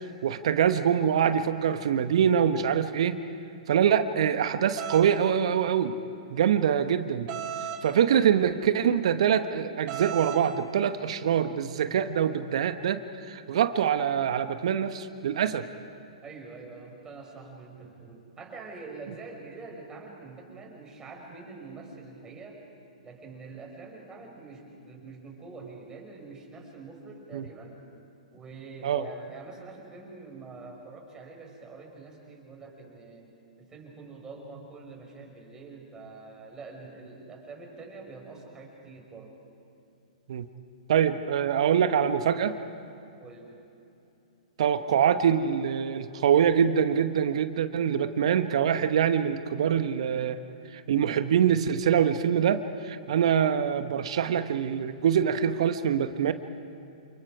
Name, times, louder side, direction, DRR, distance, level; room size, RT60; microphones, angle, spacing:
voice 1, 0.2-3.2 3.7-6.0 6.3-7.3 7.8-15.7 27.3-27.4 28.8-29.1 40.3-40.4 40.9-42.5 44.6-50.4 50.7-56.3, right 8 dB, 55° right, 10 dB, 1.1 m, -24 dB
sound 1, 4.8-5.1 7.3-7.8 9.9-10.4, right 9 dB, 35° right, 6.2 m, -34 dB
voice 2, 16.2-22.6 23.0-27.8 28.3-39.4 43.2-43.6, right 3 dB, 15° right, 0 dB, 5.6 m, -45 dB
29.0 x 28.5 x 4.9 m, 2.8 s
figure-of-eight pair, 115°, 4 cm